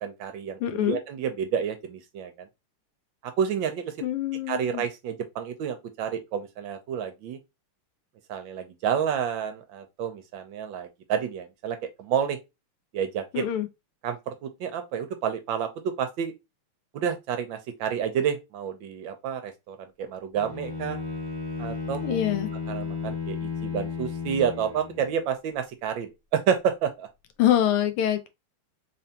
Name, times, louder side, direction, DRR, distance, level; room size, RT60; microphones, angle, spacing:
voice 1, 0.0-2.5 3.4-3.9 4.5-7.4 8.3-12.4 12.9-13.5 14.0-16.3 16.9-21.0 21.6-22.2 22.7-27.1, right 8 dB, 75° right, 1.2 m, -29 dB
voice 2, 0.6-1.0 4.0-4.8 13.3-13.7 22.0-22.5 27.4-28.3, left 11 dB, 85° left, 1.6 m, -25 dB
Bowed string instrument, 20.3-25.2, left 5 dB, 15° right, 0.8 m, -34 dB
3.9 x 3.3 x 2.8 m
omnidirectional pair, 2.4 m